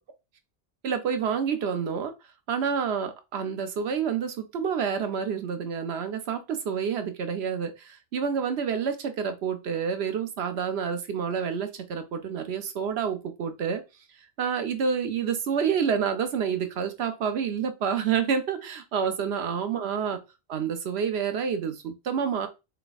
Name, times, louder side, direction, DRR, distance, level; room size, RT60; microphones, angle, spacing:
voice 1, 0.8-2.1 2.5-13.8 14.4-20.2 20.5-22.5, right 7 dB, 90° right, 1.0 m, -28 dB
3.5 x 3.3 x 4.0 m
omnidirectional pair, 1.0 m